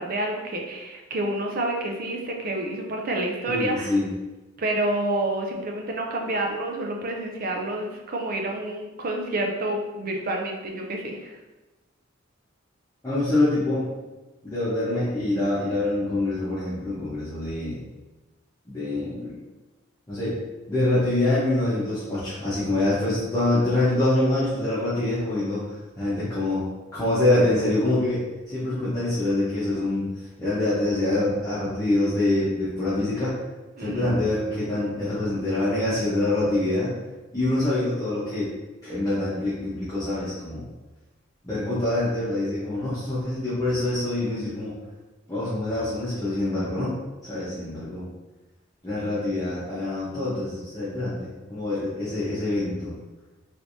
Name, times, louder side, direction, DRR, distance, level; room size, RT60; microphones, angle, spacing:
voice 1, 0.0-4.0 4.6-11.4 33.8-34.2, right 1 dB, 45° right, 1 dB, 0.5 m, -28 dB
voice 2, 3.5-4.1 13.0-13.9 14.4-17.8 18.7-19.4 20.1-20.4 20.7-26.6 26.9-30.1 30.4-33.4 33.8-36.9 37.3-38.5 38.8-40.6 41.4-44.8 45.3-46.9 47.2-48.1 48.8-52.9, left 2 dB, 15° left, -12 dB, 0.9 m, -25 dB
3.2 x 3.2 x 2.7 m, 1.1 s
head